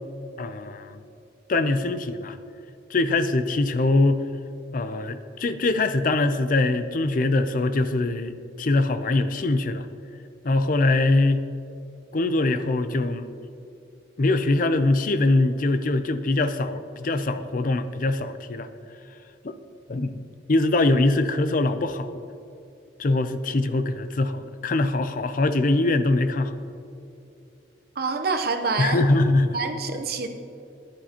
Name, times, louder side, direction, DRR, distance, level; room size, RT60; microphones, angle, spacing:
voice 1, 0.4-1.0 1.5-2.4 2.9-4.3 4.7-9.9 10.4-11.5 12.1-13.3 14.2-18.7 19.4-19.6 19.9-20.2 20.5-22.2 23.0-26.6 28.8-29.6, left 2 dB, 50° left, 11 dB, 0.5 m, -23 dB
voice 2, 28.0-29.0 29.5-30.3, right 4 dB, 55° right, 7 dB, 0.8 m, -26 dB
14.0 x 10.5 x 2.9 m, 2.7 s
head